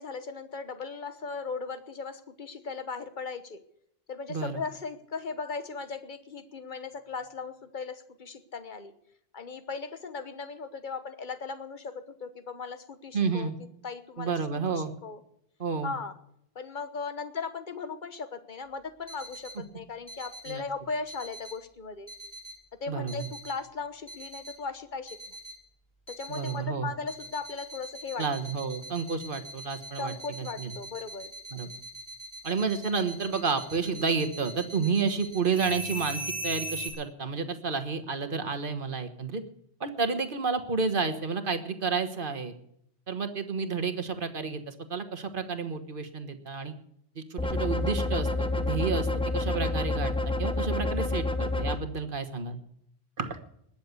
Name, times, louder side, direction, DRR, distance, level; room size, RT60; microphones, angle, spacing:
voice 1, 0.0-3.6 4.1-8.9 9.3-13.5 13.8-14.3 14.7-15.2 15.8-16.1 16.5-22.1 22.8-25.4 26.1-28.2 30.0-31.3, left 4 dB, 50° left, 10 dB, 1.3 m, -37 dB
voice 2, 4.3-4.6 13.1-13.6 14.2-14.9 15.6-15.9 19.6-19.7 20.5-20.6 22.9-23.3 26.3-26.9 28.2-30.7 31.5-31.7 32.4-39.4 39.8-42.5 43.1-46.7 47.1-50.1 50.4-52.6 53.2-53.4, right 5 dB, 55° right, 9 dB, 1.5 m, -30 dB
sound 1, 19.1-19.5 20.1-20.5 21.1-21.5 22.1-22.5 23.1-23.5 24.1-24.5 25.1-25.5 26.1-26.5 27.1-36.9, right 1 dB, 25° left, 5.2 m, -40 dB
sound 2, 47.4-51.8, left 2 dB, 5° left, 0.9 m, -28 dB
20.5 x 7.2 x 8.3 m, 0.74 s
omnidirectional pair, 1.0 m